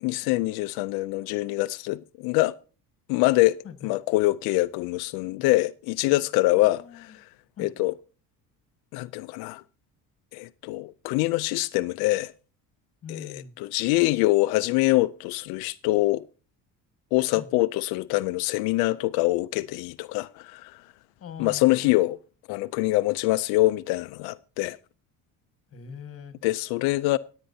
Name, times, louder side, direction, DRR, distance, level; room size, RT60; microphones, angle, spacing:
voice 1, 0.0-2.5 3.1-3.6 3.8-6.8 7.6-7.9 8.9-9.6 10.3-12.3 13.1-16.2 17.1-20.8 21.4-22.2 22.5-24.8 26.4-27.2, left 19 dB, 90° left, 0.5 m, -24 dB
voice 2, 6.6-7.2 7.6-7.7 13.0-13.6 17.4-17.5 21.2-21.9 25.7-26.4, left 7 dB, 40° left, 1.6 m, -42 dB
18.0 x 9.0 x 2.7 m
cardioid pair, 125°, 37 cm